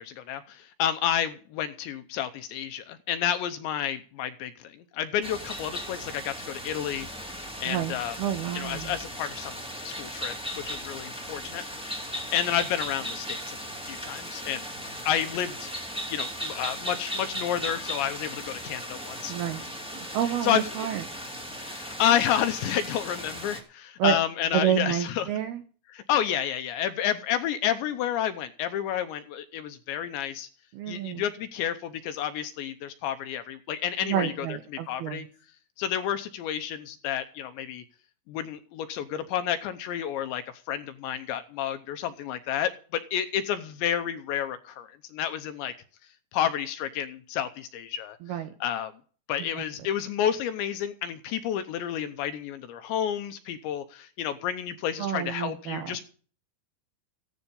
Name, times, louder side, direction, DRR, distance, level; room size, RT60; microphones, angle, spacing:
voice 1, 0.0-7.1 7.6-8.2 8.5-13.6 13.9-14.7 15.1-15.7 16.1-19.3 20.4-20.9 21.6-25.3 25.9-30.5 30.9-34.5 34.9-35.3 35.8-37.8 38.3-40.4 40.7-45.7 46.3-48.2 48.6-48.9 49.3-56.0, left 10 dB, 75° left, 10 dB, 2.8 m, -30 dB
sound 1, 5.2-23.6, equal, 5° right, 0.8 m, -37 dB
voice 2, 7.7-8.9 19.3-19.6 19.9-21.0 24.0-24.2 24.5-25.6 30.7-31.2 34.0-35.3 48.2-48.5 49.6-49.7 55.0-56.0, right 9 dB, 75° right, 7 dB, 2.4 m, -29 dB
15.5 x 11.5 x 5.3 m, 0.41 s
omnidirectional pair, 5.8 m